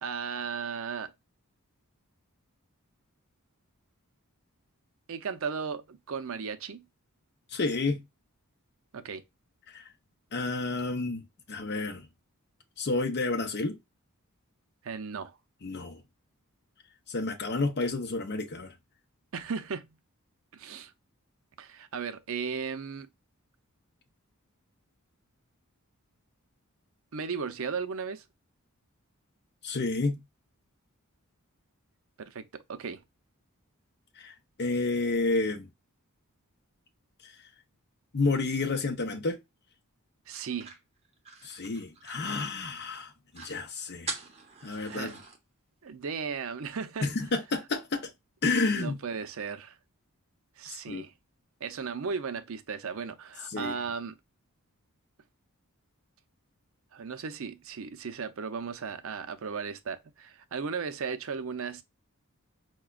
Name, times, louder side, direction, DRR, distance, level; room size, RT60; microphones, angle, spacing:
voice 1, 0.0-1.1 5.1-6.8 8.9-9.2 14.8-15.4 19.3-20.0 20.5-20.9 21.6-23.1 27.1-28.2 32.2-33.0 40.3-40.7 44.9-45.2 45.8-47.1 48.6-49.8 50.6-51.1 51.6-54.1 56.9-61.8, right 5 dB, 65° right, 0.5 m, -36 dB
voice 2, 7.5-8.0 9.7-9.8 10.3-11.2 11.5-12.0 12.8-13.8 15.6-16.0 17.1-18.7 29.6-30.2 34.2-34.3 34.6-35.7 37.2-37.3 38.1-39.4 41.4-44.1 44.6-45.1 47.0-48.1 48.4-49.0 50.9-51.0 53.5-53.7, left 3 dB, 50° left, 0.7 m, -30 dB
sound 1, 40.3-42.7 43.0-43.1 43.3-43.6 44.1-45.4, right 4 dB, 30° right, 0.8 m, -42 dB
4.8 x 2.2 x 2.2 m
head